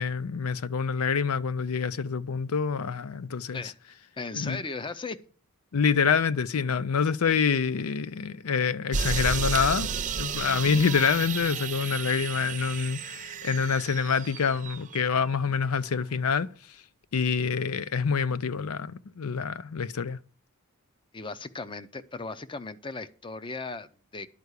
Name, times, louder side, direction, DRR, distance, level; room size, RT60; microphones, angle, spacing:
voice 1, 0.0-3.7 4.3-4.6 5.7-9.9 10.2-16.5 17.1-20.2, left 6 dB, 80° left, 0.5 m, -26 dB
voice 2, 4.2-5.2 21.1-24.3, left 3 dB, 25° left, 0.6 m, -37 dB
sound 1, 8.9-15.4, right 5 dB, 35° right, 0.6 m, -33 dB
11.0 x 4.7 x 8.1 m
head